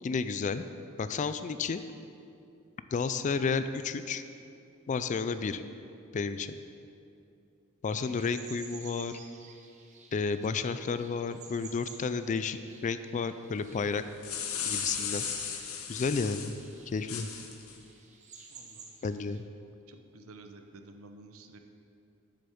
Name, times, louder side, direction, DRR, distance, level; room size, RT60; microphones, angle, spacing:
voice 1, 0.0-0.7 1.0-1.8 2.9-4.2 4.9-5.6 6.1-6.6 7.8-9.1 10.1-12.6 12.8-14.0 14.7-15.2 15.9-16.6 16.9-17.3 19.0-19.4, left 5 dB, 35° left, 11 dB, 0.3 m, -31 dB
sound 1, 7.9-19.4, right 4 dB, 35° right, 0.9 m, -52 dB
sound 2, 14.0-16.6 17.1-17.8, left 7 dB, 80° left, 0.9 m, -35 dB
voice 2, 18.5-18.9 19.9-21.6, right 2 dB, 75° right, 6 dB, 0.8 m, -51 dB
7.7 x 6.8 x 7.0 m, 2.6 s
head